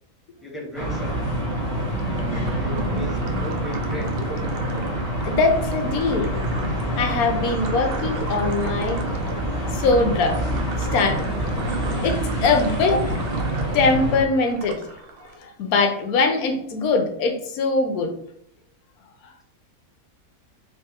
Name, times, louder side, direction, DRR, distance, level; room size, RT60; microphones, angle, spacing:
voice 1, 0.4-1.3 1.6-4.2, equal, ahead, -4 dB, 0.7 m, -36 dB
sound 1, 0.7-14.2, right 1 dB, 45° right, 1.8 m, -26 dB
sound 2, 1.6-15.4, right 5 dB, 65° right, 0.5 m, -39 dB
voice 2, 5.2-6.3 6.7-9.1 9.7-10.4 10.8-11.3 11.6-11.7 12.0-13.1 13.7-14.8 15.2-18.1, left 3 dB, 75° left, 5 dB, 1.1 m, -22 dB
3.4 x 3.3 x 2.8 m, 0.67 s
omnidirectional pair, 1.6 m